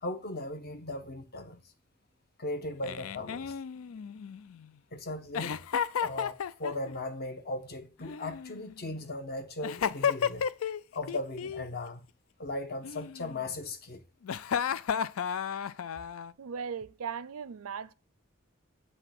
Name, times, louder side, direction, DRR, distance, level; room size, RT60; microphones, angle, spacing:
voice 1, 0.0-1.6 2.4-3.5 4.9-5.6 6.0-10.5 10.9-12.0 12.4-14.0, left 2 dB, 50° left, 1.2 m, -37 dB
Giggle, 2.8-4.7 5.3-6.9 8.0-8.9 9.6-10.8 11.1-11.6 12.8-13.6 14.2-16.3, left 7 dB, 75° left, 0.4 m, -33 dB
voice 2, 16.4-17.9, right 6 dB, 80° right, 0.5 m, -38 dB
7.9 x 3.3 x 5.8 m
head